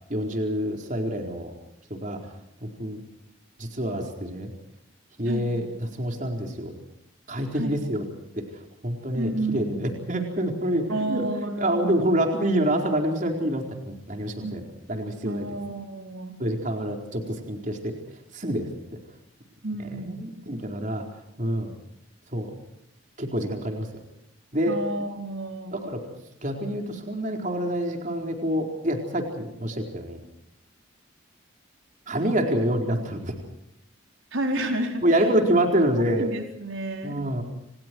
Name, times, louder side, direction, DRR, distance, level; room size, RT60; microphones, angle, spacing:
voice 1, 0.1-1.5 1.9-2.2 2.6-3.0 3.6-4.5 5.2-6.7 7.3-8.0 8.4-8.5 8.8-14.6 14.9-15.6 16.4-18.0 18.3-18.7 19.9-21.0 21.4-21.7 22.3-22.5 23.2-23.9 24.5-24.8 25.7-26.0 26.4-30.2 32.1-33.3 35.0-36.3 37.0-37.4, right 1 dB, 40° right, 2 dB, 4.4 m, -27 dB
voice 2, 5.2-5.7 7.5-8.0 9.1-9.9 10.9-12.1 14.4-14.7 15.2-16.4 19.6-20.2 24.7-25.7 34.3-35.3 36.1-37.3, right 1 dB, 75° right, 3 dB, 4.6 m, -31 dB
30.0 x 28.5 x 4.7 m, 0.81 s
head